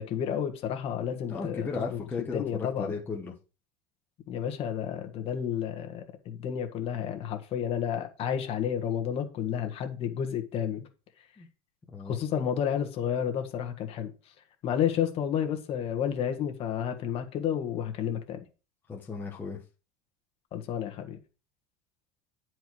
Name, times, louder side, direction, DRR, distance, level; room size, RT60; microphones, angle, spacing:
voice 1, 0.0-2.0 2.3-2.9 4.3-10.8 12.0-14.1 14.6-18.4 20.5-21.2, left 9 dB, 35° left, 1.5 m, -31 dB
voice 2, 1.3-3.3 11.4-11.5 11.9-12.2 18.9-19.6, left 4 dB, 10° left, 1.1 m, -35 dB
10.5 x 4.6 x 4.6 m
cardioid pair, 165°, 16 cm